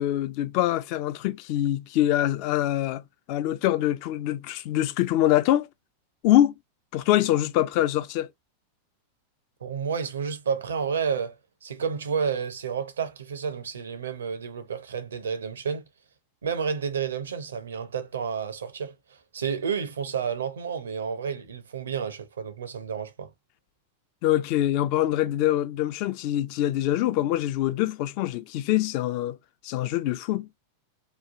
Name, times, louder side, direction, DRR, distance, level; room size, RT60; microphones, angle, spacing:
voice 1, 0.0-3.0 3.3-5.7 6.2-6.6 6.9-8.3 24.2-29.4 29.6-30.5, left 13 dB, 50° left, 0.4 m, -24 dB
voice 2, 9.6-11.4 11.6-15.8 16.4-18.9 19.3-23.3, right 6 dB, 75° right, 0.6 m, -30 dB
3.1 x 2.2 x 2.5 m
figure-of-eight pair, 90°, 0 cm